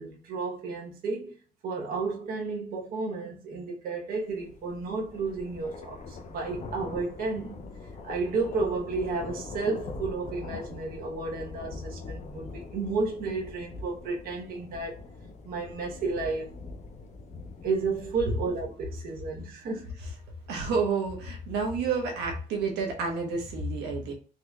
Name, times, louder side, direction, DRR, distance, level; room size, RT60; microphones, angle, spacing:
voice 1, 0.0-1.4 1.6-7.6 8.0-15.0 15.4-16.5 17.6-19.9, right 4 dB, 60° right, 1.0 m, -32 dB
sound 1, 4.3-18.8, left 3 dB, 45° left, 0.5 m, -42 dB
voice 2, 20.5-24.1, right 4 dB, 85° right, 1.0 m, -29 dB
3.8 x 2.9 x 2.3 m
cardioid pair, 110°, 17 cm